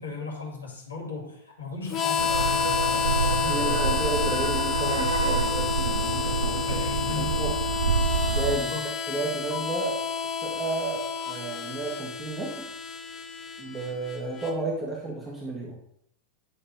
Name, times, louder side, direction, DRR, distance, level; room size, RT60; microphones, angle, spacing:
voice 1, 0.0-4.0 6.6-7.4 8.5-8.9, left 4 dB, 75° left, 0 dB, 2.3 m, -36 dB
Harmonica, 1.9-14.5, left 7 dB, 30° left, 0.6 m, -30 dB
sound 1, 2.2-8.6, right 6 dB, 70° right, 0.6 m, -28 dB
voice 2, 3.4-6.8 7.1-7.6 8.3-10.0 10.4-12.7 13.6-15.8, right 2 dB, 15° right, -2 dB, 1.4 m, -32 dB
9.9 x 3.4 x 4.5 m, 0.71 s
figure-of-eight pair, 90°, 0 cm